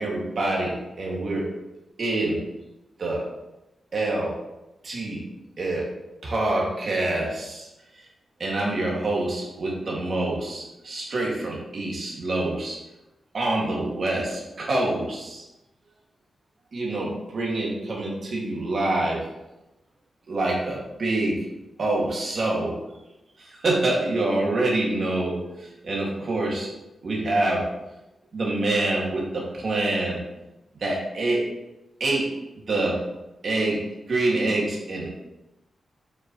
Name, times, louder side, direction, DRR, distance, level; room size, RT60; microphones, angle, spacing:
voice 1, 0.0-1.5 2.0-2.4 3.0-3.3 3.9-4.4 4.8-5.2 5.6-5.9 6.2-7.7 8.4-12.8 13.3-15.4 16.7-19.3 20.3-21.5 21.8-22.8 23.4-26.7 27.0-27.7 28.3-30.2 30.8-31.5 32.0-32.3 32.7-33.1 33.4-35.1, right 2 dB, 45° right, -3 dB, 2.2 m, -26 dB
7.6 x 6.4 x 3.1 m, 0.95 s
wide cardioid pair, 175°, 0 cm